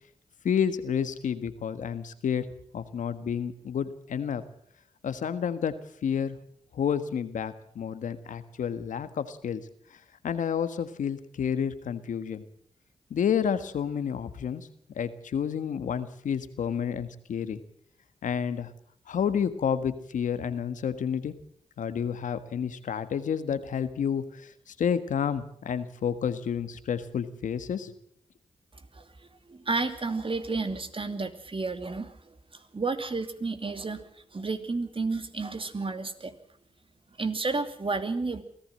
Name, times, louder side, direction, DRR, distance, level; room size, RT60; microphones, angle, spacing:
voice 1, 0.4-2.5 2.7-4.4 5.0-5.7 6.0-6.4 6.7-9.6 9.9-12.4 13.1-14.7 14.9-17.6 18.2-18.7 19.1-21.3 21.8-27.9, left 7 dB, 85° left, 11 dB, 1.5 m, -30 dB
voice 2, 29.5-32.1 32.7-34.0 34.3-36.3 37.2-38.4, right 3 dB, 45° right, 9 dB, 2.7 m, -31 dB
23.5 x 15.0 x 7.7 m, 0.65 s
supercardioid pair, 40°, 13 cm